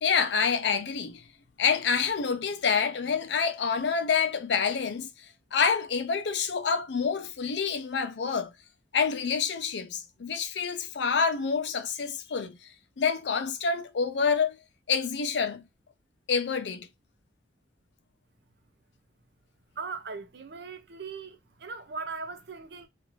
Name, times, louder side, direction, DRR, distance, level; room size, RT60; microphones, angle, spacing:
voice 1, 0.0-1.2 1.6-5.1 5.5-8.5 8.9-12.6 13.0-14.6 14.9-15.6 16.3-16.9, left 6 dB, 70° left, 0.5 m, -27 dB
voice 2, 19.8-22.9, right 4 dB, 65° right, 0.5 m, -39 dB
2.5 x 2.5 x 2.9 m
head